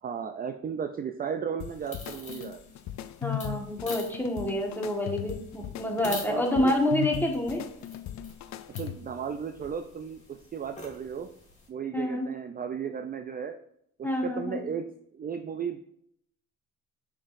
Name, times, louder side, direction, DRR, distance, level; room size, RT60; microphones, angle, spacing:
voice 1, 0.0-2.6 6.2-6.7 8.8-11.3 11.7-13.6 14.0-14.8 15.1-15.8, right 7 dB, 30° right, 7 dB, 0.4 m, -35 dB
sound 1, 1.6-9.2, left 12 dB, 65° left, 0.4 m, -38 dB
sound 2, 1.7-11.7, left 2 dB, 25° left, 2.2 m, -47 dB
voice 2, 3.2-7.6 11.9-12.3 14.0-14.6, left 1 dB, 5° left, 0 dB, 1.5 m, -28 dB
6.3 x 5.9 x 2.6 m, 0.70 s
cardioid pair, 90°, 30 cm